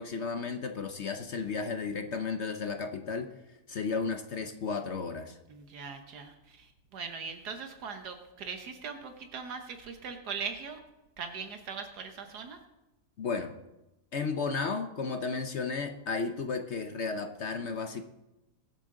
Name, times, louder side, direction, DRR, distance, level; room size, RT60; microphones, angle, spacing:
voice 1, 0.0-3.3 3.7-5.4 13.2-13.5 14.1-18.0, left 4 dB, 55° left, 7 dB, 0.9 m, -33 dB
voice 2, 5.5-10.8 11.2-12.6, right 5 dB, 80° right, 6 dB, 1.6 m, -40 dB
22.0 x 8.3 x 3.8 m, 0.98 s
omnidirectional pair, 1.7 m